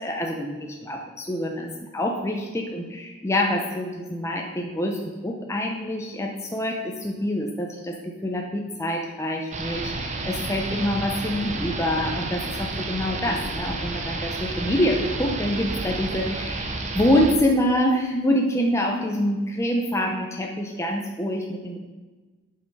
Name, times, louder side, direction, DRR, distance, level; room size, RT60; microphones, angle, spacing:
voice 1, 0.0-21.8, left 1 dB, 15° left, 0 dB, 0.7 m, -26 dB
sound 1, 9.5-17.3, right 2 dB, 35° right, 0.8 m, -31 dB
8.4 x 5.8 x 5.4 m, 1.3 s
head